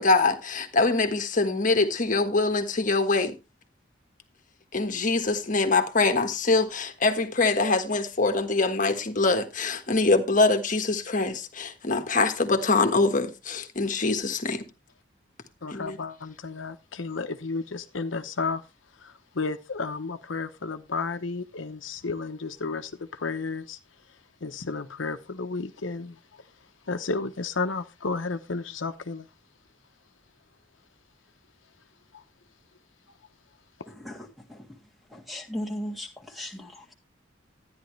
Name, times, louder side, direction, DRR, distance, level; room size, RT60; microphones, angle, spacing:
voice 1, 0.0-3.3 4.7-14.6 15.7-16.0, left 3 dB, 45° left, 1.4 m, -24 dB
voice 2, 15.6-18.6 19.0-23.8 24.4-26.4 26.9-29.3 32.1-32.2, left 4 dB, 85° left, 0.9 m, -32 dB
voice 3, 34.0-34.7 35.1-36.9, equal, ahead, 1.9 m, -37 dB
13.0 x 9.9 x 3.2 m
head